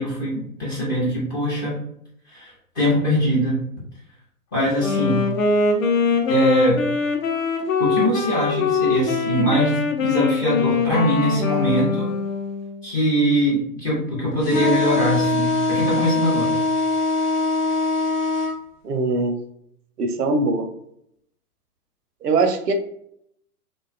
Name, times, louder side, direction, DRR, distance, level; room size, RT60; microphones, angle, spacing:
voice 1, 0.0-1.8 2.3-3.6 4.5-5.3 6.3-6.8 7.8-12.1 12.8-16.6, equal, 15° left, -7 dB, 0.4 m, -22 dB
Wind instrument woodwind instrument, 4.8-12.8, left 4 dB, 60° left, 0.6 m, -22 dB
sound 1, 14.4-18.5, left 3 dB, 85° left, 0.9 m, -22 dB
voice 2, 18.8-19.4 20.0-20.7 22.2-22.7, right 3 dB, 80° right, 6 dB, 0.6 m, -21 dB
2.5 x 2.2 x 2.4 m, 0.73 s
figure-of-eight pair, 115°, 46 cm